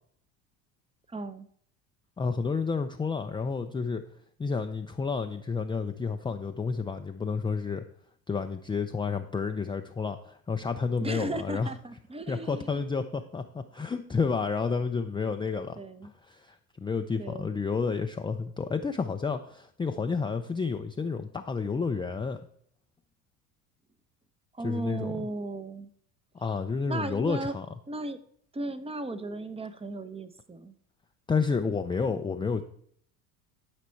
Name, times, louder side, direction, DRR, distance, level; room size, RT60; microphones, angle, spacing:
voice 1, 1.1-1.5 11.0-12.8 15.8-16.1 17.2-17.5 24.5-25.9 26.9-27.6 27.9-28.2 28.5-30.7, right 2 dB, 15° right, 13 dB, 0.7 m, -36 dB
voice 2, 2.2-4.0 4.4-7.8 8.3-11.7 12.3-15.8 16.2-22.4 24.6-25.1 26.3-27.7 31.3-32.6, left 5 dB, 10° left, 5 dB, 0.4 m, -30 dB
11.5 x 5.1 x 4.5 m, 0.64 s
hypercardioid pair, 85°, 43 cm